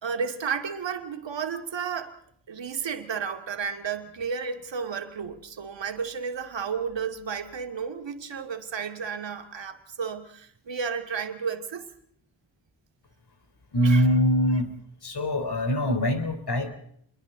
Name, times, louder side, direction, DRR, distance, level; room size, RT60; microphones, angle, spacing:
voice 1, 0.0-2.2 2.5-11.9 13.8-14.0, right 6 dB, 70° right, 2.5 m, -32 dB
voice 2, 13.7-14.7 15.0-16.7, equal, 55° left, 4.0 m, -23 dB
29.0 x 22.5 x 4.0 m
cardioid pair, 60°, 46 cm